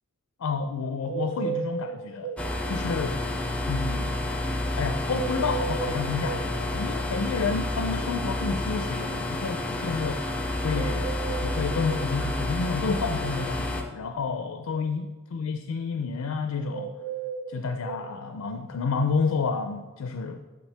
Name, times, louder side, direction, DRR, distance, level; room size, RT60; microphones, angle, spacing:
voice 1, 0.4-2.3 2.7-3.2 3.7-4.3 4.8-16.9 17.5-20.4, left 4 dB, 80° left, 8 dB, 0.4 m, -30 dB
sound 1, 1.1-2.5 5.1-6.5 10.7-12.1 16.7-18.1, right 7 dB, 75° right, 0.6 m, -34 dB
sound 2, 2.4-13.8, left 1 dB, 5° left, 0.4 m, -30 dB
7.2 x 5.9 x 3.3 m, 1.2 s
head